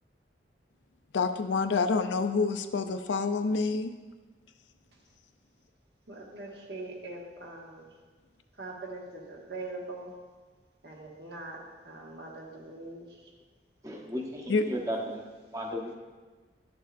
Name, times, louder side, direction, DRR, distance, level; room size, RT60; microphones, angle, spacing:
voice 1, 1.1-3.9 14.5-14.7, left 4 dB, 85° left, 0.5 m, -27 dB
voice 2, 6.1-7.8 8.6-10.1 10.8-11.6 11.8-13.0, right 2 dB, 60° right, 1.4 m, -42 dB
voice 3, 13.8-15.2 15.5-15.9, equal, 20° right, 0.9 m, -34 dB
11.0 x 6.8 x 2.5 m
head